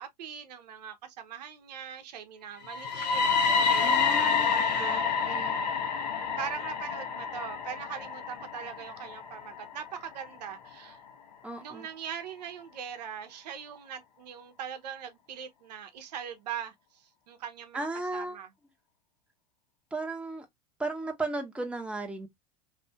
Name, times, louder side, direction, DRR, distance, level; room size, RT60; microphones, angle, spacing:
voice 1, 0.0-5.5 6.4-11.0 11.6-17.9 18.1-18.5, right 8 dB, 80° right, 0.8 m, -41 dB
sound 1, 2.6-10.5, left 5 dB, 90° left, 0.8 m, -28 dB
voice 2, 3.8-4.5 4.8-5.6 11.4-11.9 17.7-18.4 19.9-20.5 20.8-22.3, right 2 dB, 5° right, 0.8 m, -35 dB
2.8 x 2.6 x 2.2 m
hypercardioid pair, 100°, 21 cm